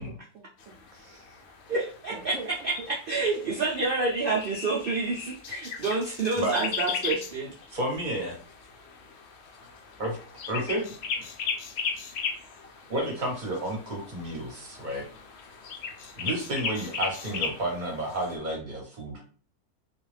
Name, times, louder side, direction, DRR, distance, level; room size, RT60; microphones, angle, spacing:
voice 1, 0.0-1.7 2.1-3.7 4.8-4.9, right 4 dB, 70° right, 2 dB, 0.8 m, -45 dB
sound 1, 0.6-18.4, left 5 dB, 75° left, 0.6 m, -37 dB
voice 2, 1.7-2.3 2.6-7.5, right 3 dB, 85° right, -3 dB, 0.4 m, -28 dB
voice 3, 7.7-8.4 10.0-10.2 10.5-10.9 12.9-15.1 16.2-19.2, right 1 dB, 40° right, 0 dB, 0.8 m, -31 dB
2.4 x 2.3 x 3.2 m, 0.41 s
omnidirectional pair, 1.6 m